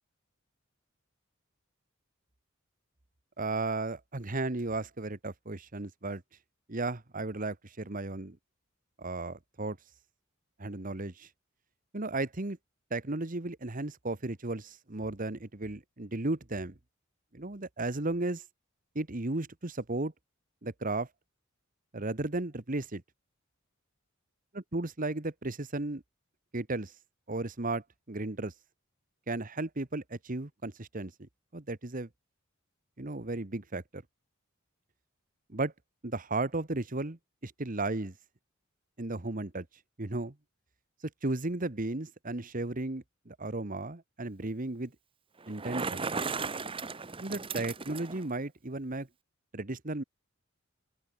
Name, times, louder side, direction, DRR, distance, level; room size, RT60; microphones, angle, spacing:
voice 1, 3.4-6.2 6.7-8.4 9.0-9.8 10.6-11.3 11.9-12.6 12.9-16.7 17.3-18.4 18.9-20.1 20.6-21.1 21.9-23.0 24.5-26.0 26.5-26.9 27.3-28.5 29.3-31.1 31.5-32.1 33.0-34.0 35.5-35.7 36.0-38.1 39.0-39.6 40.0-40.3 41.2-44.9 45.5-46.2 47.2-49.1 49.5-50.0, right 2 dB, 40° right, 1.4 m, -34 dB
Bicycle, 45.4-48.3, right 4 dB, 25° right, 1.0 m, -36 dB
open air
head